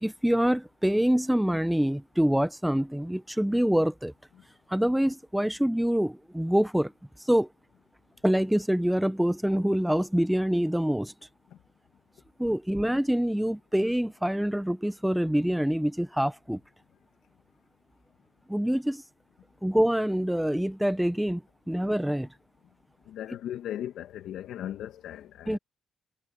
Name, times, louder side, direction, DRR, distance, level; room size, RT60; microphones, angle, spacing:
voice 1, 0.0-4.1 4.7-6.9 7.2-7.5 8.2-11.1 12.4-16.6 18.5-19.0 19.6-22.3 25.5-25.6, equal, 5° right, 0.9 m, -25 dB
voice 2, 23.1-25.6, left 11 dB, 80° left, 1.9 m, -37 dB
cardioid pair, 90°, 0 cm